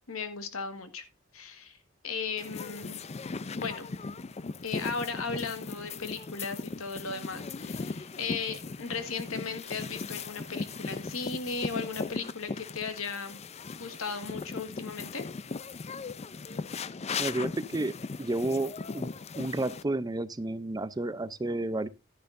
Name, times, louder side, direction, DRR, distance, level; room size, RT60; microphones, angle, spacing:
voice 1, 0.1-1.0 1.3-1.8 2.0-3.0 3.5-3.9 4.6-13.4 13.8-15.2, left 5 dB, 85° left, 1.7 m, -36 dB
sound 1, 2.4-19.8, left 4 dB, 30° left, 0.5 m, -38 dB
voice 2, 17.2-17.9 18.2-19.1 19.4-21.9, right 2 dB, 20° right, 0.5 m, -31 dB
12.0 x 10.5 x 2.6 m
head